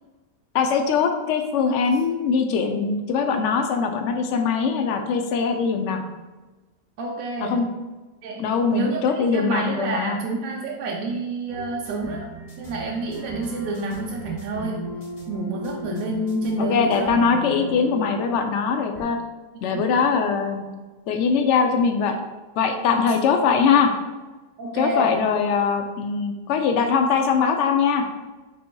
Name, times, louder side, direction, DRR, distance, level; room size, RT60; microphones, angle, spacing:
voice 1, 0.5-6.0 7.4-7.7 8.4-10.2 15.9-16.1 16.6-19.2 19.6-20.7 21.1-22.2 22.6-23.9 24.7-28.0, left 5 dB, 65° left, 5 dB, 0.7 m, -22 dB
voice 2, 7.0-7.7 8.2-9.0 9.3-12.3 12.6-14.9 15.3-17.2 19.7-19.9 24.6-25.2, right 2 dB, 70° right, -2 dB, 0.9 m, -28 dB
sound 1, 11.5-19.0, equal, 35° left, 0.8 m, -37 dB
5.3 x 4.1 x 2.3 m, 1.2 s
omnidirectional pair, 1.7 m